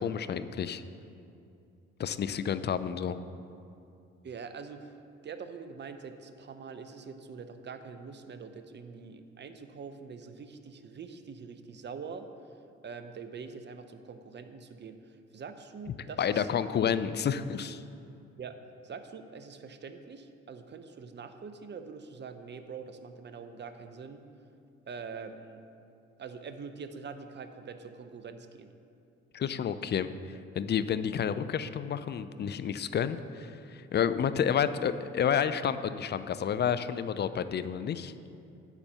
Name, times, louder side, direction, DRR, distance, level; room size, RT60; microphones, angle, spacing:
voice 1, 0.0-0.8 2.0-3.2 16.2-17.8 29.3-38.1, left 8 dB, 35° left, 12 dB, 0.5 m, -30 dB
voice 2, 4.2-4.9 5.2-12.3 12.8-16.5 18.4-18.6 18.8-24.2 24.8-25.6 26.2-28.7, right 5 dB, 35° right, 9 dB, 0.8 m, -44 dB
9.9 x 4.4 x 6.9 m, 2.6 s
hypercardioid pair, 55°, 30 cm